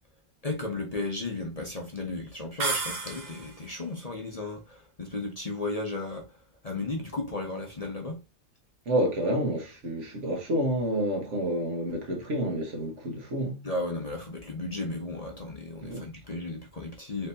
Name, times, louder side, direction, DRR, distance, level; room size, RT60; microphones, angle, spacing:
voice 1, 0.4-6.4 6.6-8.2 13.6-17.3, left 2 dB, 35° left, 0.8 m, -34 dB
sound 1, 2.6-3.7, right 4 dB, 45° right, 0.7 m, -31 dB
voice 2, 8.8-13.6 15.8-16.1, right 1 dB, 70° right, 1.7 m, -29 dB
4.4 x 3.9 x 2.8 m
omnidirectional pair, 1.3 m